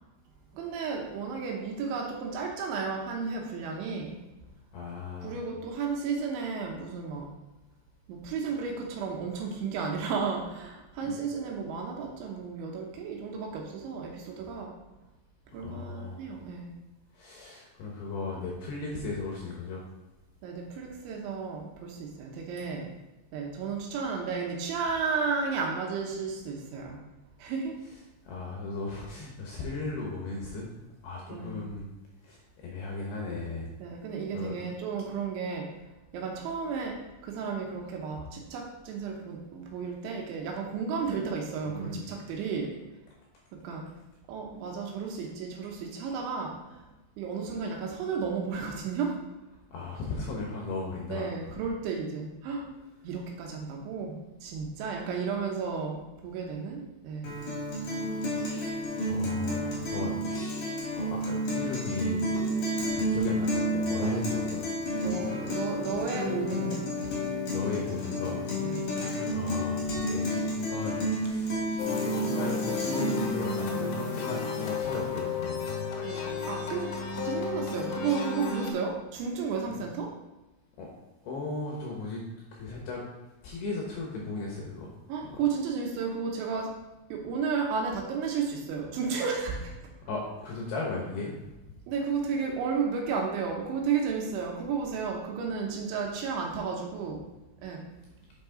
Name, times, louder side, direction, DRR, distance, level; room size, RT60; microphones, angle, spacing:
voice 1, 0.5-4.2 5.2-7.3 8.1-14.8 15.5-16.7 20.4-22.9 23.3-27.0 27.4-27.8 31.3-31.6 33.8-35.8 36.1-42.8 43.5-43.9 44.3-46.9 47.2-49.2 51.1-52.7 53.0-57.4 64.9-66.8 68.6-69.1 76.0-80.1 85.1-86.8 87.1-89.9 91.9-97.3 97.6-97.9, right 5 dB, 75° right, 1 dB, 3.0 m, -33 dB
voice 2, 4.7-5.4 11.0-11.1 15.5-16.3 17.1-19.8 28.2-30.7 31.0-31.9 32.2-33.7 34.3-34.7 41.7-42.0 49.7-51.3 58.4-62.4 62.8-64.6 65.0-65.3 67.5-68.4 68.8-75.7 79.7-79.8 80.8-80.9 81.2-82.2 82.5-83.0 83.4-84.9 85.2-85.4 90.1-91.4, left 3 dB, 75° left, -1 dB, 2.5 m, -36 dB
Guitar, 57.2-73.2, equal, 55° left, 2.0 m, -30 dB
sound 1, 71.8-78.7, left 5 dB, 90° left, 3.6 m, -33 dB
8.0 x 5.9 x 3.7 m, 1.0 s
omnidirectional pair, 5.8 m